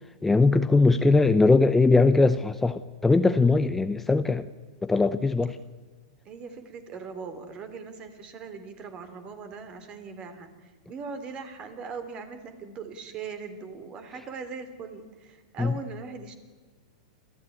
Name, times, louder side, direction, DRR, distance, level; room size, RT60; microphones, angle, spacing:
voice 1, 0.2-4.5 4.8-5.6 15.6-15.7, left 3 dB, 10° left, 11 dB, 0.8 m, -20 dB
voice 2, 6.3-16.4, right 5 dB, 35° right, 9 dB, 3.7 m, -40 dB
27.0 x 15.0 x 9.7 m, 1.4 s
hypercardioid pair, 120°, 3 cm